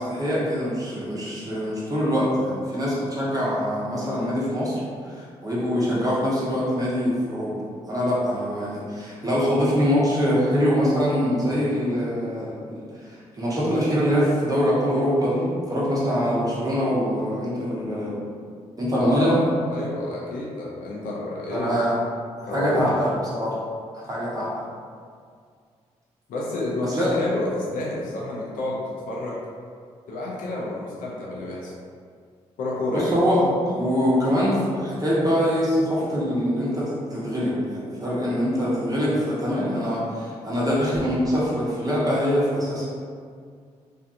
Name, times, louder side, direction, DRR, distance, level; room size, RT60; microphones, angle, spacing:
voice 1, 0.0-7.6 7.9-18.2 18.8-19.5 21.5-22.0 22.5-23.6 24.1-24.5 26.8-27.1 32.9-42.9, equal, 25° right, -8 dB, 0.9 m, -24 dB
voice 2, 18.9-21.7 22.5-23.0 26.3-29.4 30.1-31.7 32.6-33.1, left 2 dB, 75° left, -5 dB, 0.6 m, -29 dB
2.6 x 2.3 x 2.6 m, 2.1 s
supercardioid pair, 45°, 14 cm